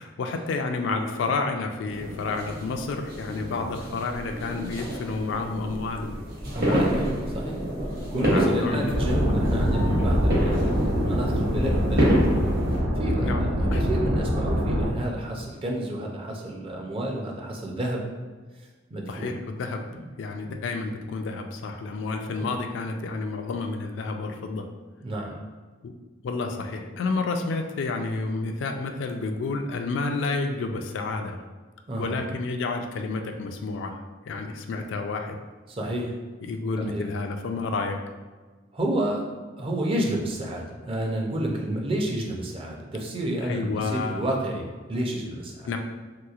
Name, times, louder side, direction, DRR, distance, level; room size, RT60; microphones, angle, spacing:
voice 1, 0.0-6.2 6.6-7.0 8.1-9.4 13.2-13.8 19.1-19.8 20.2-24.7 25.8-25.9 26.2-31.4 32.0-33.9 34.3-35.4 36.5-38.0 43.4-44.2 45.7-45.8, left 3 dB, 65° left, 4 dB, 0.3 m, -30 dB
sound 1, 1.9-12.8, equal, 55° right, 1.0 m, -29 dB
voice 2, 6.5-7.6 7.9-12.1 13.0-18.0 18.9-19.3 19.9-20.0 20.4-20.5 22.4-22.5 25.0-25.3 31.9-32.2 35.7-36.2 36.8-37.0 38.7-39.2 39.6-45.7, right 1 dB, 30° right, 0 dB, 0.4 m, -30 dB
sound 2, 8.9-14.9, equal, 80° right, 0.6 m, -24 dB
3.2 x 2.9 x 2.3 m, 1.3 s
head